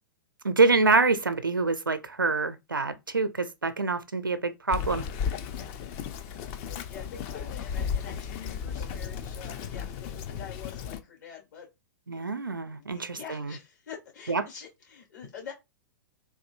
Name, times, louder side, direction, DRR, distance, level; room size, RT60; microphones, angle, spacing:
voice 1, 0.4-5.0 12.1-13.5 14.3-14.4, right 3 dB, 85° right, 0.5 m, -26 dB
Bird vocalization bird call bird song, 4.7-11.0, left 7 dB, 35° left, 0.4 m, -34 dB
voice 2, 6.2-11.7 12.8-15.5, left 7 dB, 60° left, 1.9 m, -46 dB
3.7 x 2.6 x 2.5 m
figure-of-eight pair, 105°, 11 cm